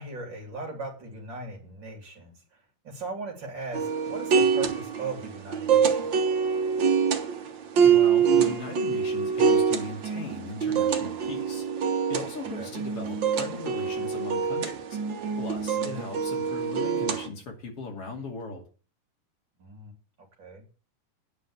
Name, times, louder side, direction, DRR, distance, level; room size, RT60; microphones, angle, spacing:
voice 1, 0.0-6.1 12.5-12.7 15.7-16.0 19.6-19.9 20.2-20.6, right 3 dB, 35° right, 2 dB, 3.2 m, -39 dB
sound 1, 3.7-17.3, right 6 dB, 75° right, 1.0 m, -25 dB
voice 2, 7.8-11.6 12.1-15.0 15.4-18.6, left 3 dB, 45° left, 0 dB, 3.3 m, -38 dB
9.9 x 5.3 x 8.3 m, 0.38 s
omnidirectional pair, 3.8 m